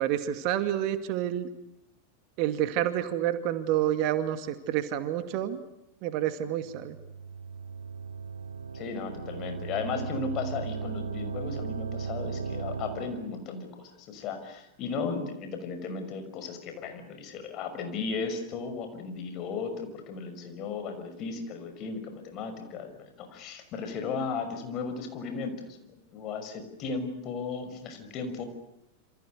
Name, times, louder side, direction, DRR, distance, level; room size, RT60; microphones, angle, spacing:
voice 1, 0.0-1.5 2.4-5.6 6.0-7.0, right 11 dB, 45° right, 10 dB, 2.3 m, -28 dB
sound 1, 6.6-13.4, right 5 dB, 75° right, 1.2 m, -37 dB
voice 2, 8.7-28.4, left 5 dB, 35° left, 7 dB, 6.0 m, -35 dB
28.0 x 27.5 x 6.7 m, 0.85 s
figure-of-eight pair, 90°, 0 cm